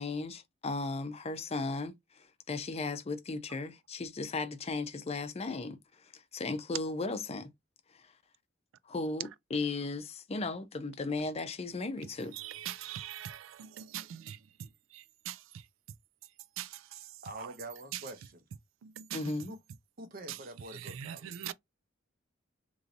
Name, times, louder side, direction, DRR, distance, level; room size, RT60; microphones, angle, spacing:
voice 1, 0.0-1.9 2.5-5.8 6.3-7.5 8.9-12.3 19.1-19.5, left 3 dB, 30° left, 0.5 m, -35 dB
voice 2, 12.3-15.4 16.6-17.1 17.4-17.5 17.9-18.0 18.8-19.4 20.3-20.4 20.7-21.5, right 11 dB, 80° right, 0.3 m, -42 dB
voice 3, 17.2-18.4 19.5-19.6 20.0-21.3, right 1 dB, 50° right, 0.7 m, -45 dB
3.1 x 2.6 x 2.5 m
head